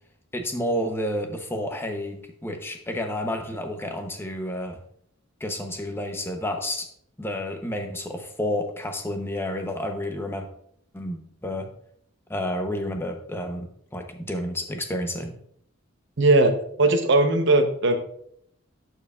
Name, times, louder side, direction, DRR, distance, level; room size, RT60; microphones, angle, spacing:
voice 1, 0.3-4.8 5.4-6.9 7.2-10.5 10.9-11.7 12.3-15.3, left 1 dB, 10° left, 4 dB, 0.8 m, -30 dB
voice 2, 16.2-18.0, right 2 dB, 60° right, 6 dB, 0.9 m, -19 dB
12.0 x 4.6 x 2.4 m, 0.66 s
head